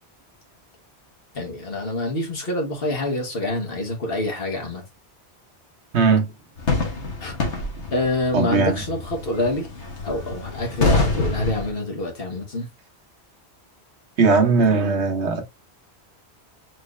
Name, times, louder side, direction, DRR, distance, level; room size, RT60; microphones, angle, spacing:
voice 1, 1.3-4.8 7.2-7.3 7.9-9.7 10.0-12.7, left 1 dB, 60° left, 1.7 m, -26 dB
voice 2, 5.9-6.3 8.3-8.8 14.2-15.4, right 4 dB, 80° right, 1.3 m, -18 dB
sound 1, 6.6-11.7, left 2 dB, 85° left, 1.6 m, -26 dB
4.5 x 3.2 x 3.1 m
omnidirectional pair, 1.1 m